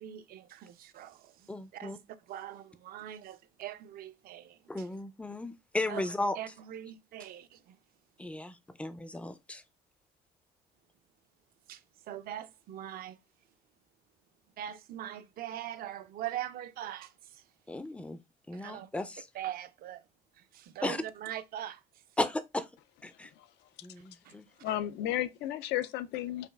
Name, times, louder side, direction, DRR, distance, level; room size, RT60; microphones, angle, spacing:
voice 1, 0.0-2.0 2.3-4.9 5.9-6.1 6.4-7.8 11.7-13.2 14.6-17.4 18.5-18.9 19.3-20.0 20.3-21.8 24.2-24.4 24.7-24.8, right 11 dB, 60° right, 0.4 m, -42 dB
voice 2, 1.5-2.0 4.7-6.4 8.2-9.6 17.7-18.2 18.5-19.3 20.8-21.0 22.2-22.7 23.0-23.3 23.8-24.4, left 2 dB, 5° left, 0.3 m, -35 dB
voice 3, 24.6-26.5, left 13 dB, 85° left, 0.4 m, -33 dB
5.0 x 2.4 x 2.2 m
cardioid pair, 110°, 17 cm